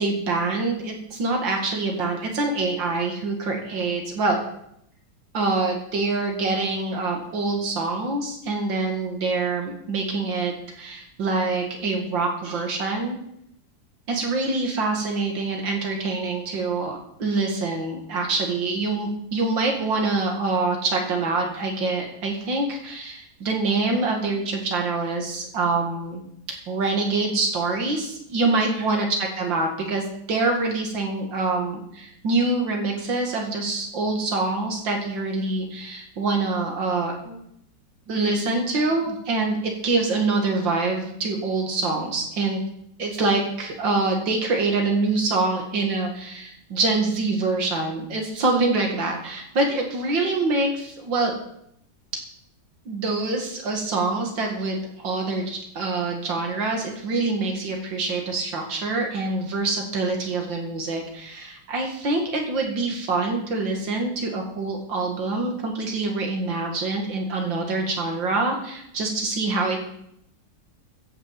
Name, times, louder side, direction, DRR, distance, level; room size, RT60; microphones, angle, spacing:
voice 1, 0.0-4.4 5.3-13.2 14.1-26.2 26.7-37.4 38.1-39.6 39.8-42.6 43.0-51.3 52.9-69.8, right 3 dB, 85° right, 1 dB, 2.8 m, -25 dB
15.0 x 6.2 x 7.5 m, 0.74 s
omnidirectional pair, 2.0 m